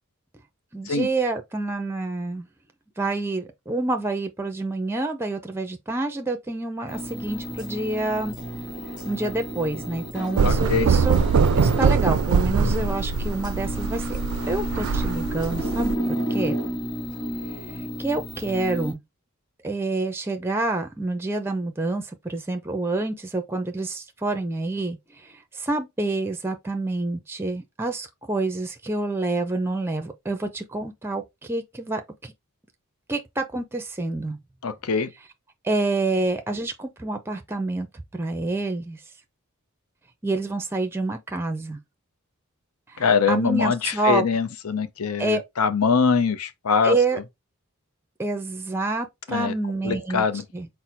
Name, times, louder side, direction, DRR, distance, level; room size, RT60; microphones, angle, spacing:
voice 1, 0.7-2.5 3.0-8.4 9.1-11.2 11.5-14.2 14.5-15.9 16.3-16.6 18.0-19.0 19.6-25.0 25.2-32.3 33.1-34.4 35.6-37.9 38.1-39.0 40.2-41.8 42.9-44.3 45.2-45.4 46.8-47.2 48.2-50.3 50.5-50.7, right 2 dB, 10° right, 0.5 m, -27 dB
sound 1, 6.9-18.9, right 1 dB, 20° left, 2.0 m, -32 dB
voice 2, 10.4-10.9 34.6-35.1 43.0-47.2 49.3-49.5 49.8-50.4, left 5 dB, 75° left, 0.6 m, -23 dB
sound 2, 10.4-16.0, right 5 dB, 70° right, 0.4 m, -22 dB
4.2 x 2.0 x 4.4 m
head